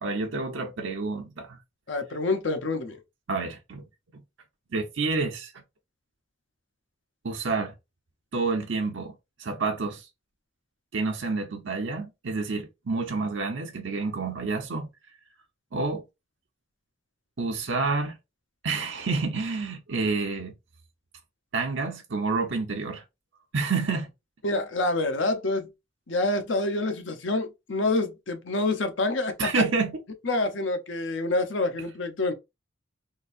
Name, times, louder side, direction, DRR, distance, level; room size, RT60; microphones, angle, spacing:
voice 1, 0.0-1.6 3.3-3.9 4.1-4.2 4.7-5.5 7.2-7.7 8.3-10.1 10.9-14.9 15.7-16.1 17.4-18.2 18.6-20.5 21.5-23.0 23.5-24.1 29.4-30.0, right 4 dB, 70° right, 0.7 m, -29 dB
voice 2, 1.9-3.0 24.4-25.7 26.1-29.5 30.2-32.3, left 2 dB, 75° left, 0.8 m, -27 dB
3.8 x 2.6 x 2.5 m
head